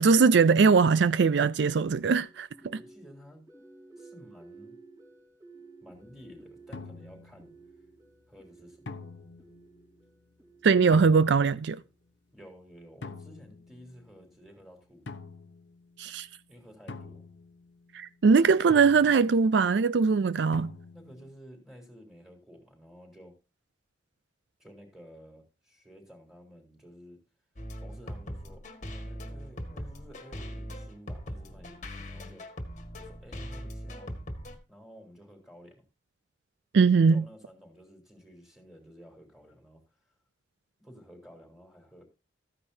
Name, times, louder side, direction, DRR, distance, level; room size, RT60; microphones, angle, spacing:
voice 1, 0.0-2.8 10.6-11.8 16.0-16.3 17.9-20.7 36.7-37.2, right 5 dB, 70° right, 0.4 m, -21 dB
sound 1, 1.9-12.0, right 3 dB, 20° right, 3.6 m, -55 dB
voice 2, 2.7-3.4 4.0-4.7 5.8-7.5 8.3-8.9 12.3-15.0 16.5-17.2 20.9-23.4 24.6-27.2 27.8-32.7 33.0-34.2 34.7-35.8 37.1-39.8 40.8-42.0, equal, ahead, 3.7 m, -52 dB
sound 2, 5.9-6.2 6.7-7.6 8.9-9.8 10.9-11.7 13.0-14.3 15.1-16.2 16.9-18.1 18.7-19.7 20.5-21.3, left 3 dB, 70° left, 0.9 m, -46 dB
sound 3, 27.6-34.6, equal, 40° left, 1.6 m, -40 dB
14.5 x 9.8 x 2.8 m
head